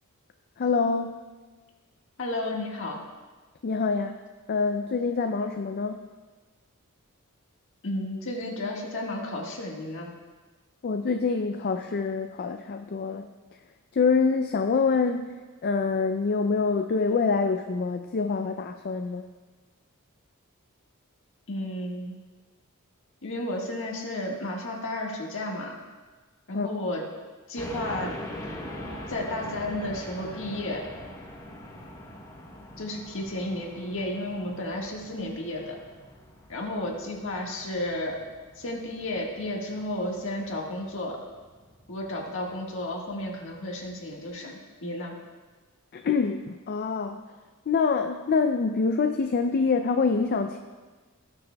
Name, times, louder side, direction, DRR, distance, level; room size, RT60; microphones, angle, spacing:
voice 1, 0.6-1.2 3.6-4.2 4.5-6.0 10.8-13.3 13.9-15.3 15.6-19.3 26.5-26.7 45.9-47.2 47.7-50.6, left 4 dB, 45° left, 6 dB, 0.4 m, -25 dB
voice 2, 2.2-3.0 7.8-10.1 21.5-22.1 23.2-25.7 26.5-27.0 27.5-28.2 28.5-28.6 29.1-30.8 32.8-35.8 36.5-38.2 38.6-41.2 41.9-45.1, left 1 dB, 60° left, -1 dB, 1.6 m, -32 dB
sound 1, 27.6-44.3, left 1 dB, 15° left, 0.9 m, -43 dB
18.0 x 6.7 x 2.2 m, 1.3 s
head